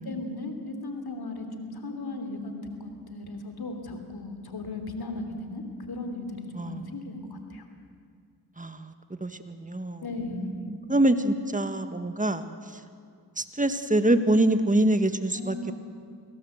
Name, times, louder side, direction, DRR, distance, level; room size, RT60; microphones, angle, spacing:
voice 1, 0.0-7.6 10.0-10.5 15.3-15.7, left 2 dB, 65° left, 6 dB, 3.2 m, -36 dB
voice 2, 6.5-6.9 8.6-8.9 9.2-10.0 10.3-12.4 13.4-15.7, right 1 dB, 20° right, 9 dB, 1.8 m, -25 dB
25.0 x 17.0 x 8.0 m, 2.2 s
cardioid pair, 45°, 40 cm